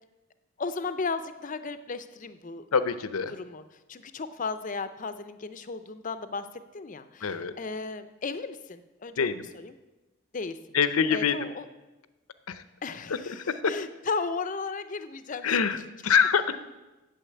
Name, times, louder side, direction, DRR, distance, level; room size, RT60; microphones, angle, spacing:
voice 1, 0.6-2.6 3.3-3.6 3.9-6.5 6.7-9.8 10.3-10.6 11.1-11.7 12.8-15.9, left 4 dB, 35° left, 12 dB, 0.5 m, -35 dB
voice 2, 2.7-3.3 7.2-7.5 9.2-9.5 10.7-11.3 12.5-12.6 15.4-16.6, left 6 dB, 75° left, 12 dB, 0.7 m, -25 dB
9.0 x 7.1 x 8.4 m, 1.1 s
head